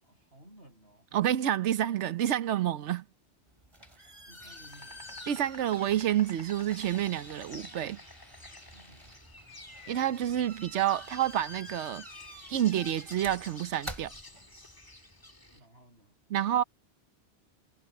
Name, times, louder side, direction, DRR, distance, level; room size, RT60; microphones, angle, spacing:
voice 1, 0.0-1.1 4.3-5.1 8.7-9.2 15.5-16.2, right 1 dB, 55° right, 8.5 m, -57 dB
voice 2, 1.1-3.0 5.3-8.0 9.9-12.0 12.5-14.1 16.3-16.6, right 11 dB, 75° right, 1.1 m, -28 dB
sound 1, 3.5-14.9, equal, 25° right, 3.2 m, -49 dB
Insect, 4.4-15.6, left 1 dB, 20° left, 2.0 m, -50 dB
omnidirectional pair, 1.2 m